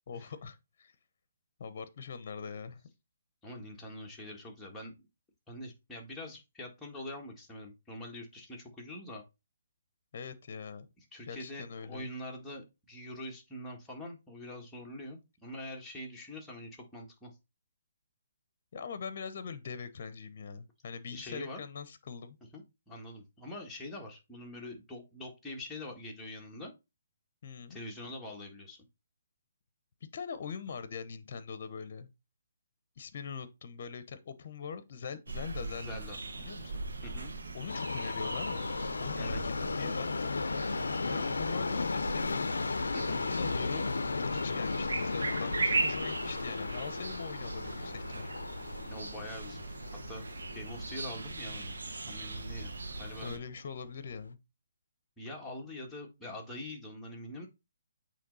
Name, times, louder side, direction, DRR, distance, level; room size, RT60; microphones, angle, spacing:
voice 1, 0.1-0.9 1.6-2.8 10.1-10.9 11.3-12.1 18.7-22.4 27.4-27.8 30.1-32.1 33.0-36.0 36.4-36.8 37.5-38.7 39.0-40.3 41.1-42.5 43.1-43.9 44.2-48.3 53.2-54.4, left 6 dB, 50° left, 0.9 m, -42 dB
voice 2, 3.4-4.9 5.5-9.2 11.1-17.3 21.1-21.6 22.5-26.7 27.7-28.8 35.8-36.2 37.0-37.3 39.2-39.5 42.9-43.2 48.8-49.8 50.1-50.3 50.5-51.8 52.1-53.4 55.2-57.5, left 1 dB, 5° left, 1.7 m, -44 dB
sound 1, 35.3-53.4, right 3 dB, 85° right, 1.4 m, -39 dB
Subway metro underground, 37.7-51.8 52.1-52.2 53.0-53.1 53.4-53.5 54.1-54.2, left 4 dB, 85° left, 0.5 m, -35 dB
8.4 x 3.2 x 4.0 m
hypercardioid pair, 155°, 0 cm